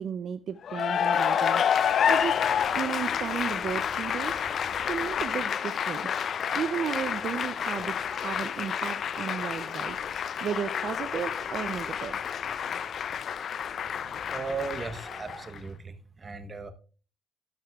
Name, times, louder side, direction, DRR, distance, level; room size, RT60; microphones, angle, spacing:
voice 1, 0.0-4.6 4.9-6.2 6.5-12.2, right 8 dB, 50° right, 12 dB, 0.4 m, -34 dB
Cheering / Applause, 0.6-15.6, left 8 dB, 45° left, 0.3 m, -29 dB
sound 1, 1.7-15.4, left 1 dB, 20° left, 3.4 m, -48 dB
voice 2, 13.9-16.7, right 4 dB, 25° right, 8 dB, 0.8 m, -37 dB
12.5 x 8.5 x 2.2 m, 0.36 s
cardioid pair, 170°, 0 cm